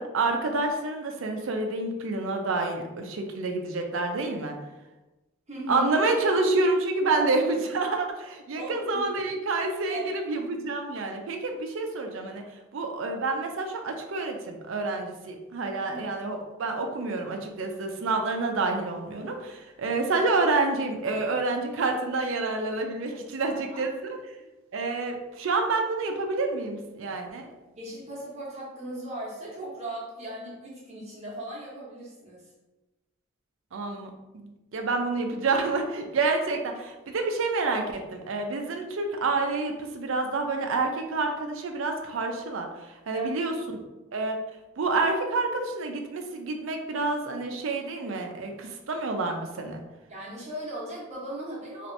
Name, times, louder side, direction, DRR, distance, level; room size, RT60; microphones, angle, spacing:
voice 1, 0.0-4.6 5.7-12.4 12.7-24.2 24.7-27.5 33.7-42.7 43.1-43.5 44.1-44.4 44.8-49.8, right 3 dB, 65° right, 4 dB, 0.4 m, -28 dB
voice 2, 5.5-5.9 7.2-7.3 8.5-9.3 9.9-10.1 15.9-16.0 23.4-23.8 27.7-32.4 43.1-43.3 50.1-51.9, right 1 dB, 30° right, -6 dB, 0.9 m, -37 dB
2.7 x 2.5 x 3.1 m, 1.1 s
head